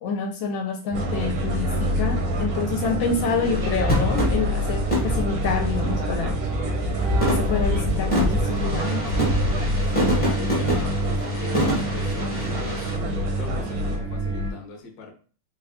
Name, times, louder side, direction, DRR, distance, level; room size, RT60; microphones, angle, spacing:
voice 1, 0.0-1.7 1.9-6.3 7.3-9.0, left 5 dB, 75° left, 2 dB, 1.3 m, -27 dB
sound 1, 0.9-14.0, right 4 dB, 60° right, 1.0 m, -33 dB
sound 2, 0.9-14.5, equal, 80° right, 1.5 m, -26 dB
sound 3, 3.4-6.7 7.1-12.9, equal, 5° left, 0.7 m, -27 dB
voice 2, 9.9-15.1, left 4 dB, 60° left, 2 dB, 1.0 m, -38 dB
4.0 x 2.2 x 3.5 m, 0.40 s
omnidirectional pair, 2.3 m